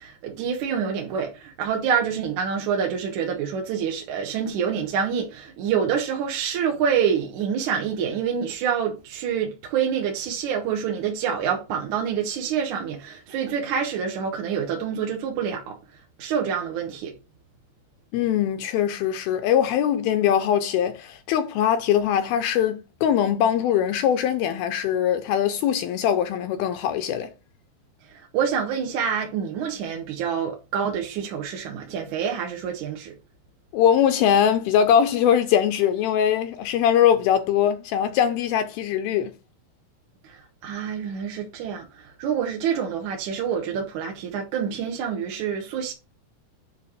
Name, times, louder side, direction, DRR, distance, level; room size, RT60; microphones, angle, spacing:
voice 1, 0.0-15.8 16.2-17.1 28.1-33.1 40.2-45.9, right 7 dB, 65° right, 2.1 m, -27 dB
voice 2, 18.1-27.3 33.7-39.3, left 9 dB, 80° left, 2.2 m, -21 dB
9.8 x 3.4 x 4.8 m
omnidirectional pair, 5.0 m